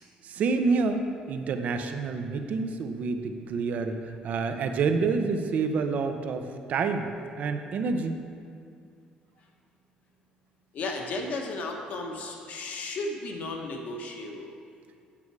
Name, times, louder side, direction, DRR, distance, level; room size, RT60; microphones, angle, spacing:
voice 1, 0.2-7.1 7.4-8.2, right 4 dB, 60° right, 7 dB, 0.8 m, -28 dB
voice 2, 10.7-14.5, left 2 dB, 60° left, 2 dB, 1.3 m, -34 dB
8.7 x 8.5 x 4.8 m, 2.3 s
cardioid pair, 120°, 3 cm